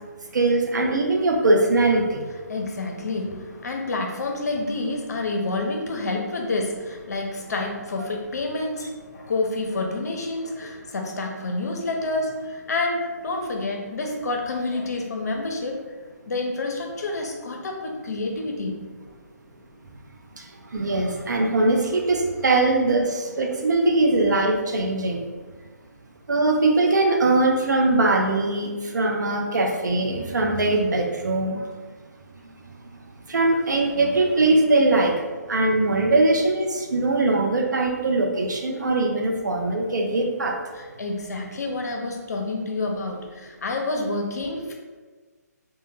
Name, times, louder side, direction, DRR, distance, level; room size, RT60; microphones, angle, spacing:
voice 1, 0.3-2.2 20.7-25.2 26.3-31.6 33.3-35.2 35.5-40.6, right 2 dB, 90° right, 2 dB, 0.5 m, -21 dB
voice 2, 2.5-15.8 16.3-18.8 40.7-44.7, left 2 dB, 70° left, 2 dB, 0.5 m, -28 dB
2.1 x 2.1 x 3.1 m, 1.4 s
hypercardioid pair, 155°, 9 cm